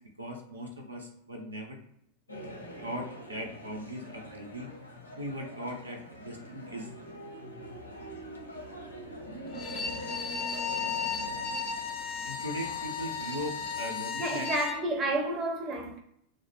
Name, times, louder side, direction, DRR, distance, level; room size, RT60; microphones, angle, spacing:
voice 1, 0.2-1.8 2.8-4.7 5.2-6.9 12.2-14.5, equal, 80° right, 0.5 m, -39 dB
sound 1, 2.3-13.9, equal, 85° left, 0.6 m, -44 dB
Bowed string instrument, 9.5-14.8, left 6 dB, 40° left, 0.4 m, -35 dB
voice 2, 14.2-16.0, right 2 dB, 25° right, 0.6 m, -30 dB
2.4 x 2.0 x 3.3 m
figure-of-eight pair, 90°, 0 cm